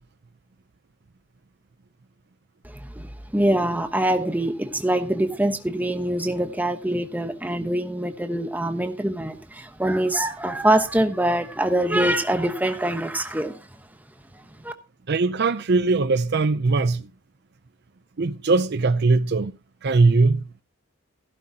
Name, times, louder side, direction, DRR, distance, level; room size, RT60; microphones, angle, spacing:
voice 1, 2.6-13.7 14.3-14.7, right 1 dB, 10° right, 1.0 m, -24 dB
voice 2, 15.1-17.1 18.2-19.5 19.8-20.4, right 3 dB, 50° right, 0.5 m, -20 dB
15.5 x 11.5 x 2.8 m
head